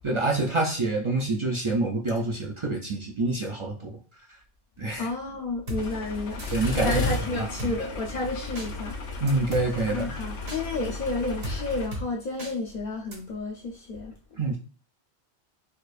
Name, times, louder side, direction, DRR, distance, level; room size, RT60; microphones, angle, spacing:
voice 1, 0.0-4.0 4.8-5.1 6.5-7.0 7.4-7.7 9.2-10.1 14.4-14.6, right 2 dB, 45° right, 0.4 m, -27 dB
voice 2, 5.0-9.4 9.9-14.1, left 2 dB, 50° left, 0.6 m, -31 dB
Drum kit, 5.7-5.8 6.4-6.8 7.6-7.7 8.6-8.7 9.3-9.7 10.5-10.6 11.4-11.6 11.9-12.1 12.4-12.5 13.1-13.2, equal, 65° right, 1.4 m, -34 dB
sound 1, 5.8-11.9, left 2 dB, 85° left, 1.0 m, -34 dB
4.6 x 2.4 x 2.4 m
omnidirectional pair, 1.1 m